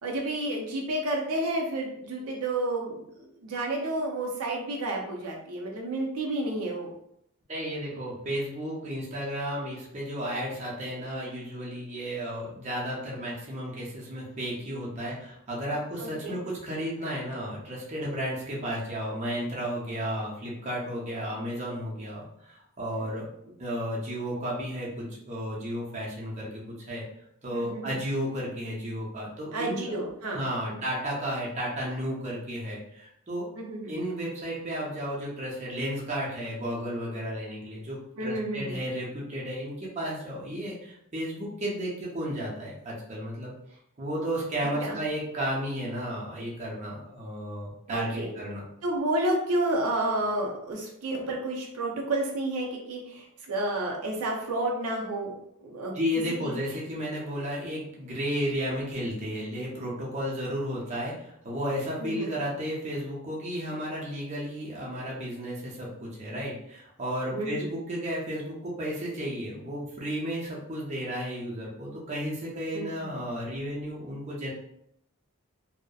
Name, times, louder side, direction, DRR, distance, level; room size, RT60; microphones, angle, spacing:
voice 1, 0.0-6.9 16.0-16.4 27.5-27.9 29.5-30.4 33.6-33.9 38.2-38.8 44.8-45.0 47.9-48.4 48.8-55.3 55.6-55.9 56.4-56.5 62.0-62.3 67.3-67.7 72.7-72.8, right 1 dB, 85° right, 0 dB, 0.5 m, -30 dB
voice 2, 7.5-23.3 23.6-27.0 27.4-30.0 30.3-33.5 33.9-43.5 44.0-48.6 55.9-74.5, equal, 30° right, -5 dB, 0.6 m, -33 dB
2.6 x 2.0 x 2.3 m, 0.75 s
head